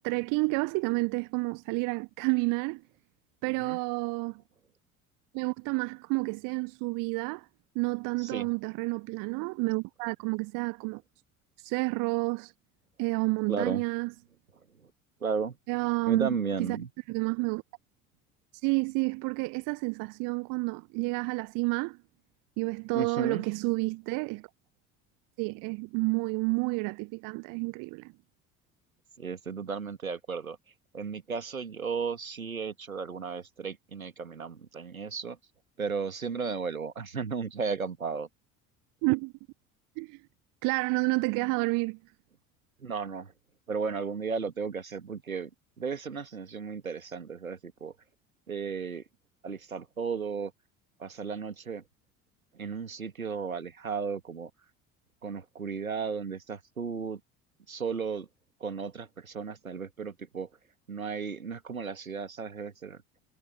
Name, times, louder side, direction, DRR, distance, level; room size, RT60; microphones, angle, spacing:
voice 1, 0.0-2.8 3.4-4.4 5.3-7.5 7.7-11.0 11.6-12.5 13.0-14.1 15.7-16.8 17.1-17.6 18.6-22.0 22.6-24.5 25.4-28.1 39.0-39.3 40.0-40.2 40.6-42.0, right 29 dB, 50° right, 1.0 m, -30 dB
voice 2, 13.5-13.8 14.8-14.9 15.2-15.6 16.0-16.9 22.9-23.4 29.2-30.6 30.9-35.4 35.8-38.3 42.8-43.3 43.7-45.5 45.8-47.9 48.5-49.0 49.4-50.5 51.0-51.8 52.5-54.5 55.2-57.2 57.7-58.3 58.6-60.5 60.9-63.0, right 5 dB, 85° right, 2.3 m, -34 dB
figure-of-eight pair, 60°, 41 cm